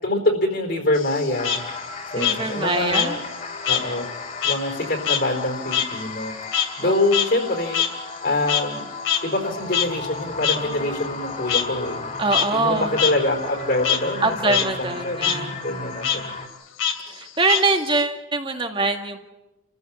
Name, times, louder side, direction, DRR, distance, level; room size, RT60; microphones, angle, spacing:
voice 1, 0.0-1.6 2.1-3.2 3.7-4.1 4.4-6.4 6.8-7.9 8.2-8.9 9.2-12.0 12.5-16.3, left 1 dB, 50° left, 3 dB, 4.2 m, -25 dB
Frog, 1.0-3.9 4.2-8.8 9.1-9.2 9.7-9.9 10.4-10.6 11.5-11.6 12.2-12.5 13.0-13.1 13.5-14.0 14.4-14.7 15.0-15.4 16.0-16.2 16.8-18.0, left 9 dB, 75° left, 2.4 m, -24 dB
sound 1, 1.3-16.5, left 3 dB, 35° left, 3.2 m, -34 dB
voice 2, 2.2-3.2 6.6-7.0 12.2-13.0 14.2-15.8 17.1-19.2, right 3 dB, 25° right, 4 dB, 1.9 m, -24 dB
28.5 x 15.0 x 8.6 m, 0.99 s
head